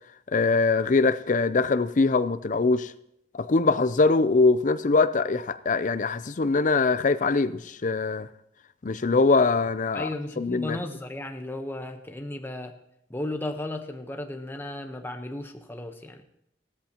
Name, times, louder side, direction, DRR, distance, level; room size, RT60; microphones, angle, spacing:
voice 1, 0.3-2.9 3.3-8.3 8.8-10.1 10.4-10.8, left 3 dB, 45° left, 0.5 m, -22 dB
voice 2, 9.9-12.7 13.1-16.2, left 1 dB, 15° left, 1.0 m, -35 dB
16.0 x 13.5 x 3.0 m
head